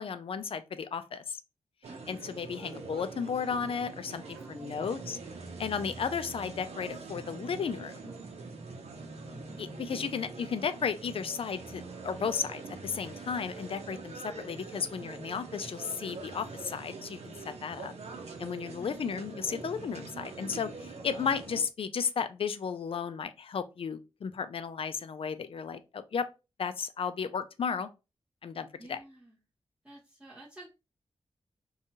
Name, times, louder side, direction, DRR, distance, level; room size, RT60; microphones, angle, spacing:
voice 1, 0.0-1.4 2.1-5.2 5.6-8.1 9.6-17.9 18.4-26.3 26.6-27.9 28.4-29.0, left 6 dB, 60° left, 0.4 m, -34 dB
sound 1, 1.8-21.6, right 3 dB, 85° right, 0.6 m, -44 dB
voice 2, 1.9-2.4 4.3-5.3 9.3-9.7 18.6-19.0 28.8-29.4 29.8-30.7, right 1 dB, 10° right, 0.8 m, -52 dB
2.7 x 2.3 x 2.8 m
wide cardioid pair, 85°, 11 cm